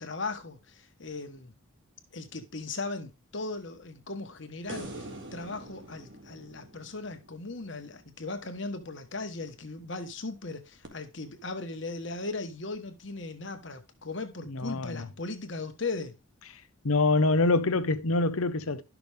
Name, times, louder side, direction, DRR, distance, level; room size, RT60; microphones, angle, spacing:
voice 1, 0.0-1.5 2.1-16.1, left 3 dB, 55° left, 1.4 m, -38 dB
sound 1, 4.7-8.0 10.8-10.9, right 2 dB, 55° right, 1.8 m, -44 dB
voice 2, 14.5-15.1 16.8-18.8, left 3 dB, 85° left, 0.9 m, -25 dB
12.0 x 6.0 x 3.5 m
head